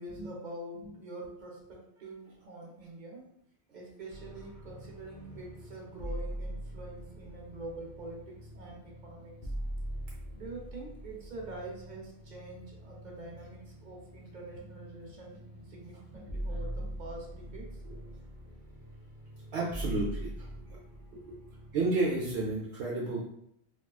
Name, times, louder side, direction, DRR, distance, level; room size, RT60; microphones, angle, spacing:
voice 1, 0.0-3.3 3.7-9.3 10.3-18.0 21.1-21.4, right 2 dB, 50° right, -2 dB, 0.8 m, -45 dB
sound 1, 4.1-22.6, right 1 dB, 25° left, 0.6 m, -43 dB
voice 2, 19.5-20.3 20.7-20.8 21.7-23.3, right 2 dB, 80° right, -4 dB, 0.9 m, -31 dB
3.5 x 2.3 x 2.3 m, 0.74 s
omnidirectional pair, 1.1 m